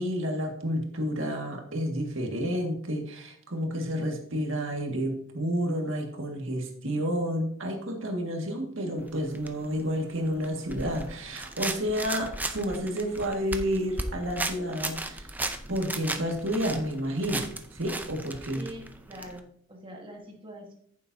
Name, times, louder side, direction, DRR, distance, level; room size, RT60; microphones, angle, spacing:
voice 1, 0.0-15.3 15.7-18.7, equal, 70° right, 2 dB, 1.9 m, -30 dB
sound 1, 9.0-19.4, right 2 dB, 10° right, 0.6 m, -37 dB
voice 2, 18.5-19.4 19.7-20.7, right 1 dB, 25° right, 0 dB, 1.4 m, -43 dB
14.0 x 7.3 x 2.7 m, 0.65 s
head